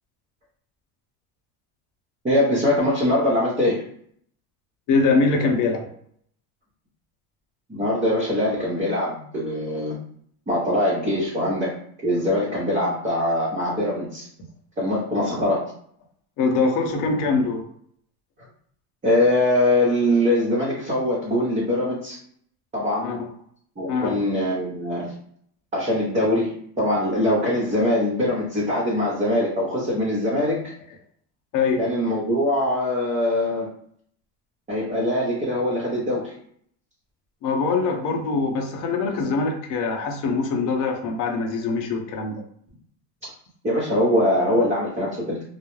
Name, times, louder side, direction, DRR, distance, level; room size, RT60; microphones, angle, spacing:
voice 1, 2.2-3.8 7.7-10.0 10.5-11.7 12.0-14.3 14.8-15.7 19.0-22.2 22.7-23.2 23.8-25.1 25.7-30.7 31.8-33.7 34.7-36.3 43.6-45.4, left 1 dB, 15° right, -7 dB, 0.8 m, -22 dB
voice 2, 4.9-5.9 16.4-17.6 23.0-23.2 23.9-24.2 31.5-31.8 37.4-42.4, left 4 dB, 45° left, 3 dB, 0.7 m, -23 dB
2.3 x 2.0 x 3.0 m, 0.64 s
supercardioid pair, 115°, 43 cm